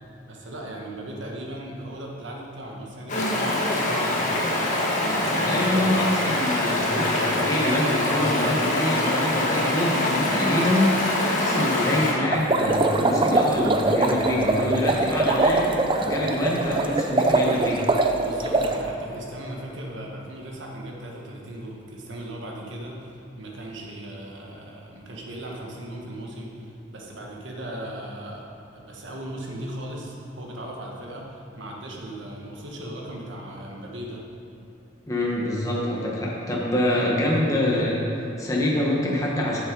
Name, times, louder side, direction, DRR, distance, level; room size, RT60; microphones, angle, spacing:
voice 1, 0.3-4.5 4.9-5.9 16.4-16.5 18.2-28.5 28.7-34.2, right 1 dB, 80° right, -1 dB, 1.4 m, -37 dB
Stream, 3.1-12.1, left 1 dB, 45° left, 1.3 m, -24 dB
voice 2, 5.2-17.8 35.1-39.6, left 1 dB, 20° left, -4 dB, 1.1 m, -25 dB
sound 1, 12.3-18.8, right 2 dB, 25° right, 0.5 m, -22 dB
7.6 x 7.1 x 5.3 m, 2.9 s
head